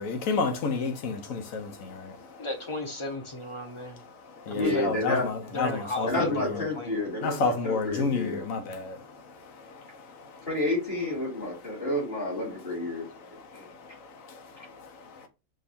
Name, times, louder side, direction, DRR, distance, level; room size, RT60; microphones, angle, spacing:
voice 1, 0.0-2.5 3.9-6.6 7.2-10.5 13.2-15.3, left 4 dB, 85° left, 1.2 m, -32 dB
voice 2, 2.4-4.0 4.5-4.9 5.5-7.0, left 2 dB, 25° left, 0.8 m, -35 dB
voice 3, 4.6-5.3 6.0-8.4 10.5-13.0 13.5-13.7, left 2 dB, 50° left, 3.0 m, -30 dB
5.1 x 2.4 x 4.2 m
omnidirectional pair, 1.4 m